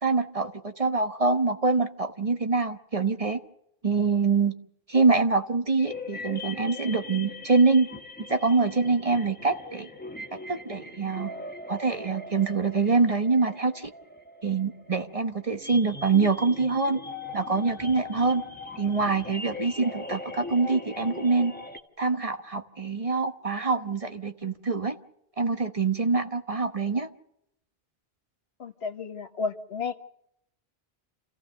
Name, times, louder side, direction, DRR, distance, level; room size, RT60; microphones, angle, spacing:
voice 1, 0.0-3.4 3.8-4.5 4.9-7.9 8.3-9.9 10.3-11.3 11.7-13.9 14.4-17.0 17.3-18.4 18.8-21.5 22.0-25.0 25.4-27.1, right 4 dB, 35° right, 7 dB, 1.1 m, -25 dB
sound 1, 5.8-21.8, left 2 dB, 10° left, 1.3 m, -41 dB
voice 2, 28.6-30.0, left 4 dB, 85° left, 8 dB, 1.4 m, -32 dB
27.5 x 15.5 x 6.5 m, 0.78 s
omnidirectional pair, 1.0 m